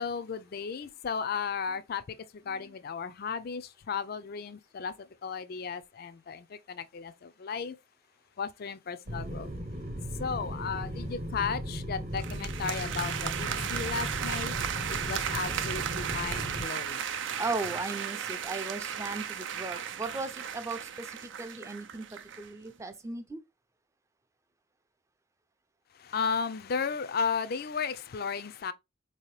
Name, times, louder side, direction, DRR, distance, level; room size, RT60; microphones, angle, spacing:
voice 1, 0.0-4.9 5.2-7.7 8.4-9.5 10.2-14.5 14.9-17.0 26.0-28.7, left 6 dB, 50° left, 0.4 m, -34 dB
sound 1, 9.1-16.6, equal, 45° right, 0.9 m, -37 dB
sound 2, 12.2-22.5, right 8 dB, 70° right, 0.5 m, -35 dB
voice 2, 17.4-22.0 22.4-23.4, right 3 dB, 15° right, 0.5 m, -37 dB
4.3 x 2.8 x 3.1 m
head